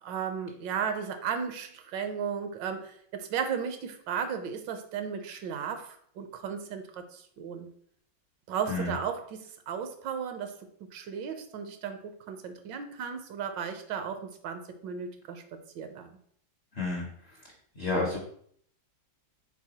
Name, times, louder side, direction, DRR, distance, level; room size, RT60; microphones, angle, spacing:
voice 1, 0.0-7.7 8.5-10.6 10.9-16.1, right 7 dB, 80° right, 7 dB, 1.3 m, -35 dB
voice 2, 16.7-17.4 17.8-18.2, left 2 dB, 55° left, -1 dB, 0.7 m, -31 dB
4.8 x 4.0 x 2.8 m, 0.63 s
omnidirectional pair, 2.0 m